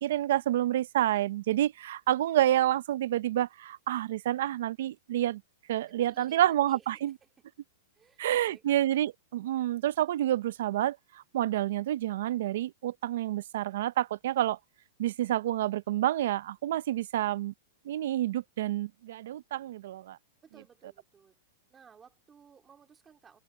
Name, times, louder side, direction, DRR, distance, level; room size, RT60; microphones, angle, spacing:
voice 1, 0.0-5.4 5.7-7.1 8.2-14.6 15.0-17.5 17.8-20.2, right 13 dB, 65° right, 0.6 m, -28 dB
voice 2, 5.9-7.3 7.9-8.7 20.4-21.4 21.7-23.4, right 7 dB, 15° right, 2.3 m, -58 dB
open air
supercardioid pair, 165°, 0 cm